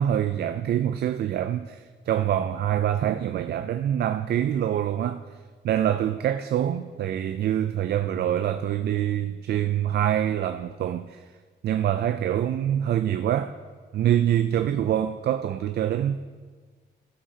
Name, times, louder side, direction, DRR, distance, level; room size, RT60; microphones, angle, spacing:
voice 1, 0.0-5.2 5.6-11.2 11.6-13.5 13.9-16.2, right 10 dB, 65° right, 0.4 m, -25 dB
15.5 x 7.5 x 2.8 m
cardioid pair, 85°, 18 cm